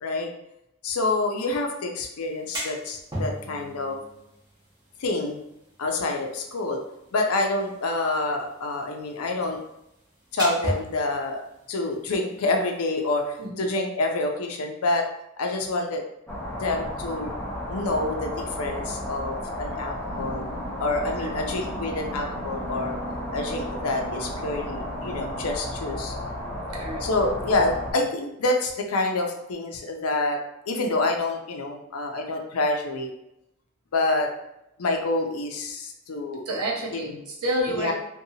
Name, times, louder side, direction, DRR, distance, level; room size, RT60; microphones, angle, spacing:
voice 1, 0.8-4.0 5.0-5.4 5.8-6.8 7.1-9.6 10.3-11.4 11.7-15.1 15.4-16.0 16.6-17.3 17.7-20.4 20.8-22.9 23.3-26.2 27.0-30.4 30.7-33.1 33.9-34.3 34.8-36.4 36.9-37.1 37.7-37.9, left 2 dB, 75° left, 3 dB, 0.5 m, -27 dB
sound 1, 2.2-13.5, equal, 20° right, 0.8 m, -39 dB
sound 2, 16.3-27.9, equal, 10° left, 0.5 m, -33 dB
voice 2, 26.7-27.1 36.5-37.9, right 1 dB, 85° right, -2 dB, 0.7 m, -29 dB
2.7 x 2.2 x 2.7 m, 0.84 s
head